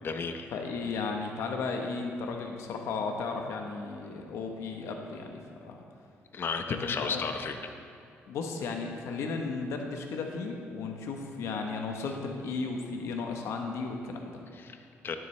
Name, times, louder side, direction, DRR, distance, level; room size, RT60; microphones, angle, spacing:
voice 1, 0.0-0.5 6.3-7.6 14.5-15.2, left 5 dB, 50° left, 6 dB, 0.8 m, -33 dB
voice 2, 0.5-5.8 6.7-7.2 8.3-14.4, left 4 dB, 80° left, 3 dB, 1.0 m, -35 dB
12.0 x 9.9 x 3.3 m, 2.5 s
cardioid pair, 90°, 5 cm